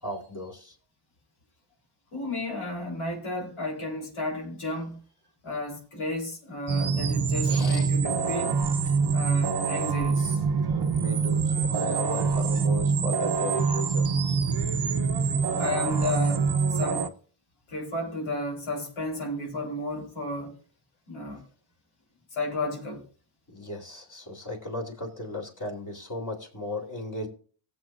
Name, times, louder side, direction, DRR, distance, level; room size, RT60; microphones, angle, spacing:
voice 1, 0.0-0.8 7.4-7.9 10.7-14.1 23.5-27.3, left 1 dB, 40° left, 3.7 m, -36 dB
voice 2, 2.1-5.0 5.4-8.6 9.1-10.4 15.6-17.1 17.7-20.5 21.1-21.4 22.3-23.0, left 2 dB, 80° left, 3.9 m, -33 dB
sound 1, 6.7-17.1, right 5 dB, 50° right, 1.0 m, -25 dB
18.0 x 7.6 x 2.5 m
cardioid pair, 65°, 49 cm